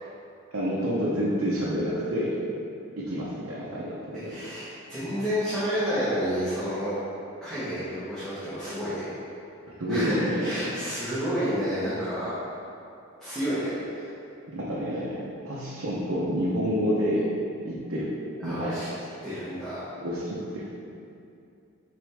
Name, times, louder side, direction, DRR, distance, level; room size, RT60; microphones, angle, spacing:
voice 1, 0.5-2.4 3.0-4.4 9.8-10.6 14.5-17.3 17.6-18.1 18.4-18.8 20.0-20.7, equal, 75° right, -7 dB, 0.8 m, -28 dB
voice 2, 4.2-6.9 7.4-9.1 9.9-12.3 13.2-14.1 18.4-18.9 19.2-19.9, equal, ahead, -15 dB, 1.3 m, -30 dB
6.2 x 4.5 x 3.5 m, 2.6 s
head